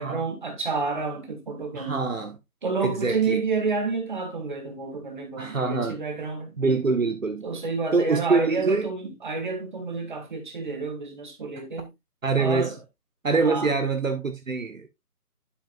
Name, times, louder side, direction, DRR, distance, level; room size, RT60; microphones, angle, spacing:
voice 1, 0.0-2.1 2.6-6.6 7.4-11.9 12.4-12.8 13.3-13.7, right 4 dB, 30° right, 1.9 m, -29 dB
voice 2, 1.7-2.3 2.8-3.4 5.4-5.9 6.6-7.5 7.9-8.9 12.2-12.7 13.2-14.9, right 4 dB, 60° right, 1.4 m, -25 dB
11.5 x 5.7 x 2.5 m
figure-of-eight pair, 155°, 45 cm